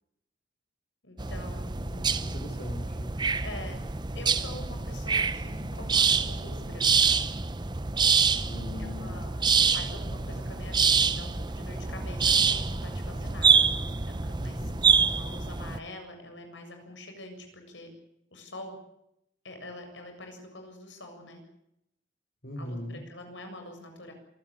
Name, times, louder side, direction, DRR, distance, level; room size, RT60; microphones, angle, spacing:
voice 1, 1.0-2.1 3.4-3.8 4.1-7.2 8.8-14.7 15.1-17.9 18.3-18.8 19.4-21.4 22.6-24.1, left 1 dB, 75° left, 5 dB, 7.5 m, -45 dB
sound 1, 1.2-15.8, right 5 dB, 25° right, 0.8 m, -26 dB
voice 2, 1.8-3.1 8.5-9.2 14.4-14.8 22.4-23.0, left 1 dB, 55° left, 6 dB, 5.7 m, -40 dB
27.0 x 17.0 x 8.4 m, 0.80 s
head